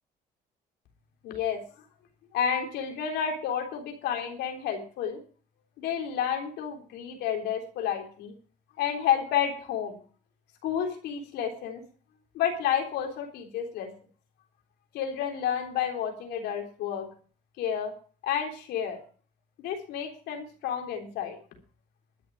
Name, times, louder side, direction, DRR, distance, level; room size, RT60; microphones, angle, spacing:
voice 1, 1.2-1.6 2.3-5.2 5.8-8.3 8.8-9.9 10.6-11.8 12.3-13.9 14.9-17.1 17.6-17.9 18.2-19.0 19.6-21.4, left 8 dB, 80° left, 4 dB, 3.7 m, -30 dB
12.5 x 7.0 x 8.8 m, 0.43 s
cardioid pair, 100°, 17 cm